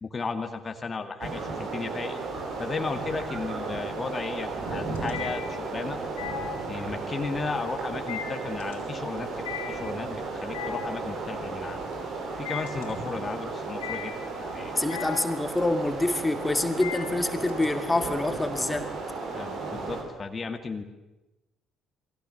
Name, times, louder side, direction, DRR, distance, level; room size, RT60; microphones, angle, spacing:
voice 1, 0.0-2.2 2.6-6.0 6.7-11.8 12.4-15.1 19.3-20.8, left 4 dB, 30° left, 5 dB, 2.3 m, -35 dB
sound 1, 1.2-20.0, right 3 dB, 55° right, 5.5 m, -34 dB
sound 2, 2.2-2.8 3.2-17.6, left 9 dB, 75° left, 4.0 m, -39 dB
voice 2, 14.7-18.9, left 2 dB, 15° left, 6 dB, 2.9 m, -26 dB
29.5 x 22.5 x 7.3 m, 1.0 s
figure-of-eight pair, 45°, 0 cm